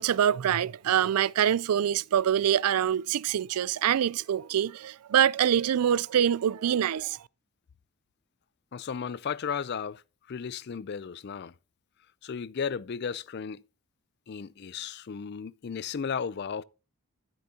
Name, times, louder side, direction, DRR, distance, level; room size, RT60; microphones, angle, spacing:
voice 1, 0.0-7.3, right 9 dB, 90° right, 0.4 m, -25 dB
voice 2, 8.7-10.0 10.3-11.5 12.2-13.6 14.3-16.6, left 6 dB, 50° left, 0.4 m, -34 dB
13.0 x 7.8 x 2.8 m
head